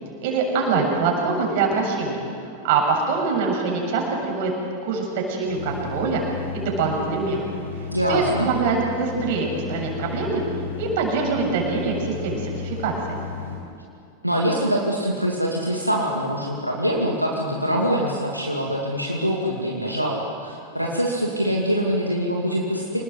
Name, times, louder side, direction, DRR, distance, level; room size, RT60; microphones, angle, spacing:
voice 1, 0.2-2.2 2.6-4.5 4.8-6.2 6.5-7.4 8.1-10.4 10.8-13.2, right 4 dB, 50° right, 0 dB, 7.5 m, -24 dB
sound 1, 5.4-13.6, left 6 dB, 80° left, 7.0 m, -34 dB
voice 2, 7.9-8.5 14.2-23.0, equal, 90° right, -3 dB, 2.7 m, -24 dB
27.5 x 20.0 x 8.1 m, 2.5 s
figure-of-eight pair, 90°, 0 cm